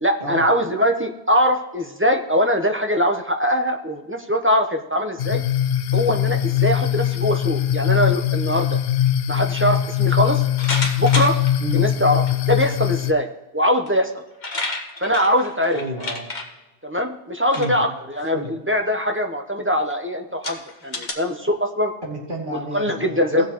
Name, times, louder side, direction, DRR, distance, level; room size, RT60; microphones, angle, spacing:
voice 1, 0.0-5.4 5.9-8.8 9.3-10.4 11.0-11.4 11.7-13.3 13.5-14.2 15.0-15.8 16.8-21.9 22.7-23.4, equal, 10° right, 4 dB, 0.8 m, -22 dB
sound 1, 5.2-13.1, left 11 dB, 65° left, 0.8 m, -21 dB
sound 2, 10.6-11.5 12.3-12.4 13.9-14.0 14.2-16.5 17.4-17.8 18.2-18.5 19.2-19.3 19.9-20.0 20.4-21.1, left 2 dB, 45° left, 1.4 m, -29 dB
voice 2, 15.7-16.2 17.5-17.8 18.3-18.5 22.0-23.4, right 1 dB, 45° right, -4 dB, 2.8 m, -30 dB
18.5 x 7.4 x 3.0 m, 1.1 s
omnidirectional pair, 1.1 m